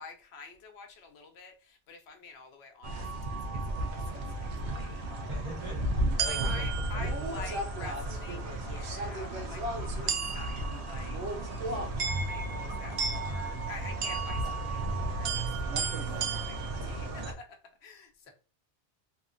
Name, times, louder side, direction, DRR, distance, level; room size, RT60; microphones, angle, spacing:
voice 1, 0.0-5.0 6.2-9.7 10.0-11.2 12.1-18.3, left 4 dB, 70° left, 0.8 m, -48 dB
sound 1, 2.8-17.3, right 2 dB, 85° right, 0.9 m, -33 dB
voice 2, 5.3-7.5, equal, 30° right, 0.7 m, -43 dB
2.8 x 2.4 x 2.5 m
omnidirectional pair, 1.1 m